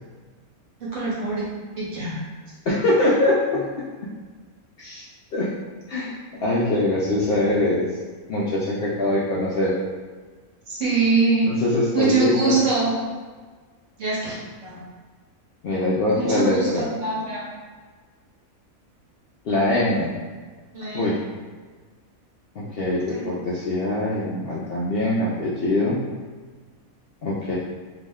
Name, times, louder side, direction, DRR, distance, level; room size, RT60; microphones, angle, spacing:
voice 1, 0.8-1.5 1.8-2.2 10.7-11.5 11.9-12.9 14.0-14.8 16.1-17.5 20.7-21.1 22.9-23.3, right 4 dB, 65° right, -7 dB, 1.3 m, -24 dB
voice 2, 2.7-3.7 4.8-5.1 5.3-5.5 5.9-7.9 8.3-9.8 11.4-12.6 15.6-16.9 19.5-20.2 20.9-21.2 22.6-26.0 27.2-27.5, left 1 dB, 65° left, -7 dB, 0.6 m, -23 dB
2.9 x 2.1 x 3.4 m, 1.5 s
omnidirectional pair, 1.4 m